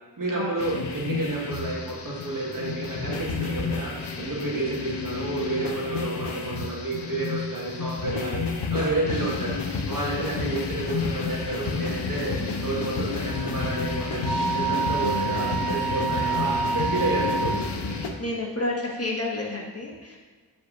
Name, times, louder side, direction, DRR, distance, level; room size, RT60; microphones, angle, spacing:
voice 1, 0.2-9.6 9.9-12.4 12.6-17.6, right 2 dB, 50° right, -4 dB, 1.8 m, -30 dB
sound 1, 0.6-18.1, left 4 dB, 75° left, 0.8 m, -31 dB
sound 2, 10.9-18.2, right 2 dB, ahead, 1.3 m, -41 dB
Wind instrument woodwind instrument, 13.3-17.6, right 5 dB, 70° right, 1.3 m, -28 dB
voice 2, 18.2-20.2, left 2 dB, 35° left, -4 dB, 1.7 m, -30 dB
8.9 x 5.5 x 2.7 m, 1.5 s
cardioid pair, 40°, 41 cm